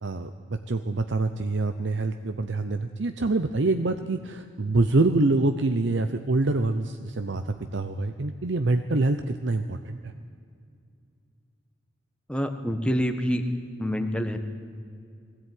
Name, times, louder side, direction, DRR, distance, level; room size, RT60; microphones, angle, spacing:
voice 1, 0.0-10.1, right 2 dB, 65° right, 9 dB, 0.7 m, -26 dB
voice 2, 12.3-13.4 13.8-14.4, equal, 5° left, 6 dB, 1.2 m, -26 dB
20.5 x 16.0 x 9.3 m, 2.3 s
head